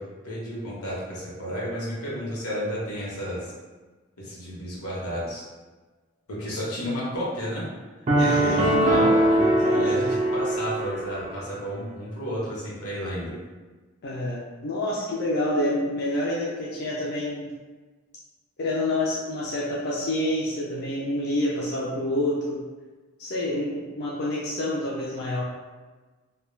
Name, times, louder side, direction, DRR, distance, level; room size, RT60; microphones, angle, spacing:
voice 1, 0.0-3.5 4.2-5.4 6.3-7.7 8.2-13.4, equal, 80° left, -5 dB, 0.9 m, -32 dB
sound 1, 8.1-11.3, right 1 dB, 30° right, 0.4 m, -22 dB
voice 2, 8.2-9.0 9.4-10.1 14.0-17.5 18.6-22.6 23.2-25.4, left 1 dB, 50° left, -6 dB, 0.4 m, -28 dB
2.2 x 2.2 x 3.1 m, 1.3 s
head